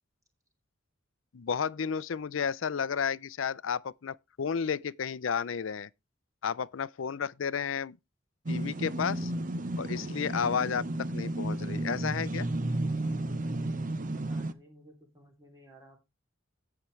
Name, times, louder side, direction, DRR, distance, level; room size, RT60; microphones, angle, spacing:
voice 1, 1.3-5.9 6.4-8.0 8.5-9.3 9.8-10.8 11.1-12.5, left 6 dB, 70° left, 0.5 m, -32 dB
sound 1, 8.5-14.5, right 1 dB, 40° right, 0.8 m, -33 dB
voice 2, 14.1-16.0, right 1 dB, 15° right, 2.8 m, -56 dB
17.0 x 5.9 x 3.2 m
head